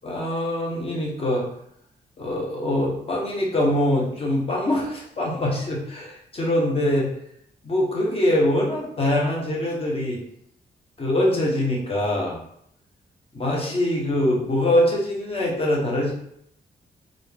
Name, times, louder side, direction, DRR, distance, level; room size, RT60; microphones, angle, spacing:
voice 1, 0.0-1.5 2.2-7.1 7.6-10.2 11.0-12.4 13.3-16.1, left 1 dB, 35° left, -3 dB, 1.1 m, -23 dB
3.8 x 2.4 x 3.5 m, 0.71 s
wide cardioid pair, 125°, 17 cm